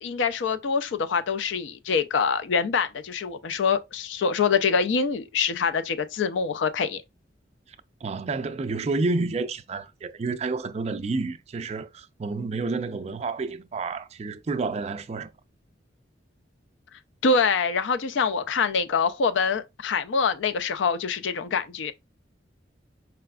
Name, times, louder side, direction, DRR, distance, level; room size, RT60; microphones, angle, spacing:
voice 1, 0.0-7.0 17.2-21.9, left 5 dB, 75° left, 0.4 m, -25 dB
voice 2, 8.0-15.3, right 3 dB, 35° right, 0.3 m, -29 dB
4.8 x 3.4 x 2.3 m
head